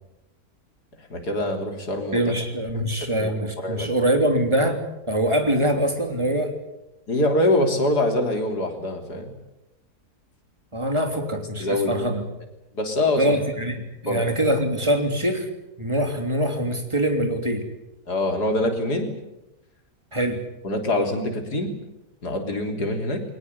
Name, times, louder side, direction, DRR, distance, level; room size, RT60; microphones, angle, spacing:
voice 1, 1.0-2.3 3.0-3.3 3.6-3.9 7.1-9.3 11.1-11.2 11.6-12.1 12.7-13.4 14.1-14.3 18.1-19.1 20.6-21.7 22.2-23.2, left 1 dB, 75° left, 4 dB, 4.1 m, -24 dB
voice 2, 2.1-6.5 10.7-12.3 13.2-15.5 15.8-17.6 20.1-20.4, right 1 dB, 15° right, 5 dB, 3.3 m, -23 dB
22.5 x 19.0 x 9.7 m, 0.92 s
omnidirectional pair, 1.7 m